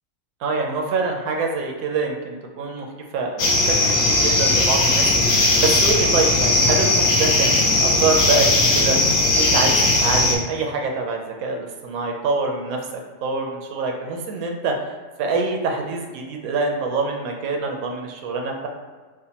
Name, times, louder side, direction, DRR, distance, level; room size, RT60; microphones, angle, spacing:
voice 1, 0.4-2.9 3.1-9.0 9.3-18.7, right 3 dB, 70° right, 2 dB, 1.0 m, -25 dB
sound 1, 3.4-10.3, left 2 dB, 70° left, 1.1 m, -18 dB
4.9 x 2.2 x 2.8 m, 1.4 s
omnidirectional pair, 1.7 m